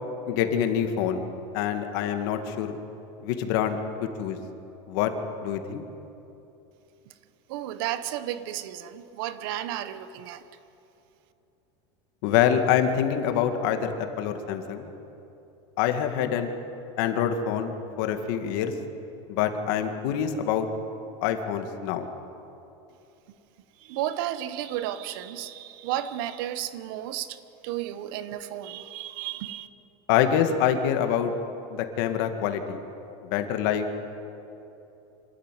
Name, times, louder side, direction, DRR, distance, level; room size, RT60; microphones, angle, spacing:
voice 1, 0.3-1.2 1.5-2.7 3.2-4.4 4.9-5.1 5.4-5.8 12.2-14.9 15.8-16.5 17.0-17.7 18.0-18.7 19.3-20.7 21.2-22.1 30.1-31.3 31.7-32.8 33.2-34.0, left 9 dB, 55° left, 6 dB, 2.1 m, -25 dB
voice 2, 7.5-10.4 23.8-27.4 27.6-29.7, right 12 dB, 60° right, 13 dB, 1.1 m, -33 dB
26.0 x 14.0 x 9.4 m, 2.9 s
supercardioid pair, 165°, 13 cm